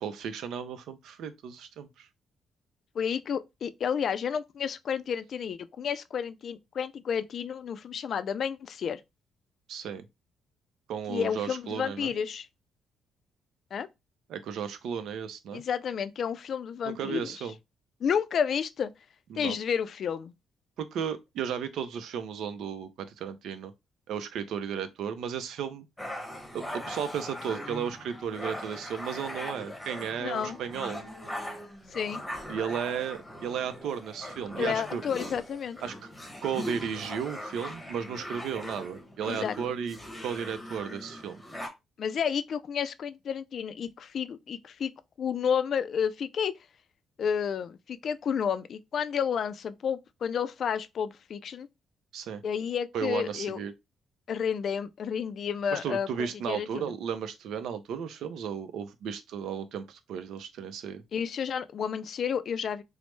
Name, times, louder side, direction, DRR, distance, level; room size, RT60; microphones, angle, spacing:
voice 1, 0.0-2.1 9.7-10.0 10.9-12.1 14.3-15.6 16.8-17.5 19.3-19.6 20.8-23.7 24.1-25.9 26.5-31.0 32.5-35.0 35.8-35.9 36.4-40.0 40.2-41.4 52.1-52.4 52.9-53.7 55.7-61.0, right 7 dB, 80° right, 0.5 m, -34 dB
voice 2, 2.9-9.0 11.1-12.5 13.7-13.9 15.5-17.3 18.0-18.9 19.4-20.3 30.2-30.6 31.9-32.2 34.6-35.8 39.3-39.6 42.0-44.9 45.2-46.5 47.2-51.7 52.4-53.6 54.3-56.9 61.1-62.8, left 7 dB, 60° left, 0.3 m, -31 dB
sound 1, 26.0-41.7, left 1 dB, 10° left, 0.9 m, -40 dB
3.1 x 2.0 x 3.1 m
cardioid pair, 90°, 0 cm